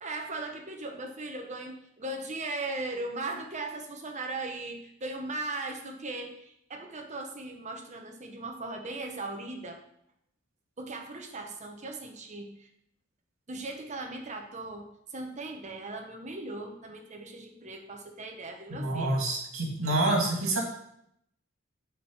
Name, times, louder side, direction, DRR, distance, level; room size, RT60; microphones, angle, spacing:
voice 1, 0.0-9.8 10.8-12.7 13.5-19.2, right 2 dB, 35° right, 3 dB, 1.0 m, -38 dB
voice 2, 18.7-20.6, right 2 dB, 75° right, 0 dB, 2.3 m, -27 dB
7.0 x 4.5 x 6.3 m, 0.75 s
head